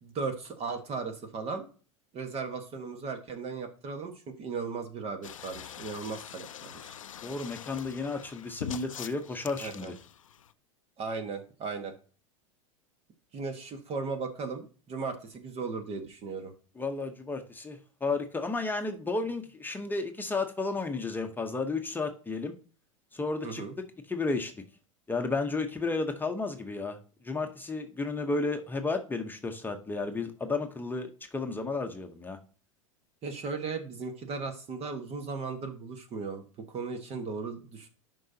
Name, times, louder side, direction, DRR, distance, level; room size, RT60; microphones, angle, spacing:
voice 1, 0.0-1.7 2.1-6.9 9.6-9.9 11.0-11.9 13.3-16.5 23.4-23.7 33.2-37.9, right 4 dB, 35° right, 6 dB, 1.6 m, -36 dB
sound 1, 5.2-10.5, left 9 dB, 90° left, 0.5 m, -44 dB
voice 2, 7.2-9.9 16.8-22.5 23.1-23.6 24.1-24.5 25.1-27.0 27.2-32.4, left 3 dB, 10° left, 4 dB, 1.0 m, -32 dB
11.0 x 5.5 x 2.8 m, 0.39 s
hypercardioid pair, 95°, 17 cm